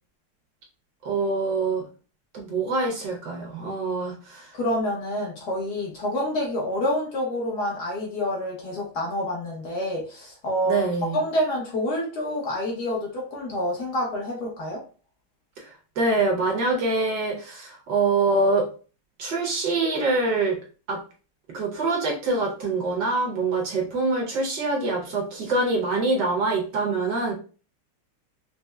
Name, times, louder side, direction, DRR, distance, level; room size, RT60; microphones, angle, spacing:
voice 1, 1.0-1.8 2.3-4.5 10.7-11.2 15.6-18.7 19.2-20.6 20.9-21.0 21.5-27.3, right 3 dB, 60° right, 0 dB, 1.3 m, -25 dB
voice 2, 4.5-10.9 11.1-14.8, left 1 dB, 60° left, -2 dB, 1.2 m, -27 dB
5.2 x 2.0 x 2.2 m, 0.37 s
omnidirectional pair, 2.4 m